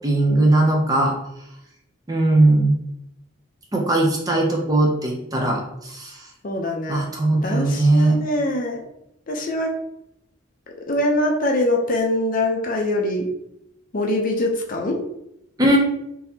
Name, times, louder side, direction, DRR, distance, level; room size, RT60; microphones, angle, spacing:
voice 1, 0.0-1.1 2.1-2.8 3.7-6.3 6.9-8.2 15.6-15.8, right 1 dB, 20° right, -1 dB, 0.5 m, -19 dB
voice 2, 6.4-7.1 7.4-8.8 9.3-9.8 10.9-13.3 13.9-15.0, left 1 dB, 40° left, 1 dB, 0.5 m, -23 dB
3.9 x 2.7 x 2.7 m, 0.79 s
head